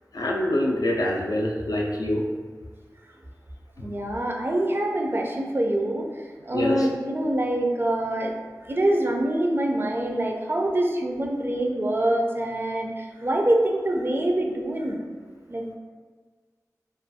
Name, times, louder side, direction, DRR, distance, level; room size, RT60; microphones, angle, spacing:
voice 1, 0.1-2.3 6.5-6.9, left 1 dB, 75° left, -1 dB, 0.4 m, -25 dB
voice 2, 3.8-6.0 6.4-8.3 8.7-15.0 15.5-15.7, right 1 dB, 35° right, 1 dB, 0.3 m, -25 dB
2.4 x 2.3 x 2.6 m, 1.5 s
wide cardioid pair, 45°, 6 cm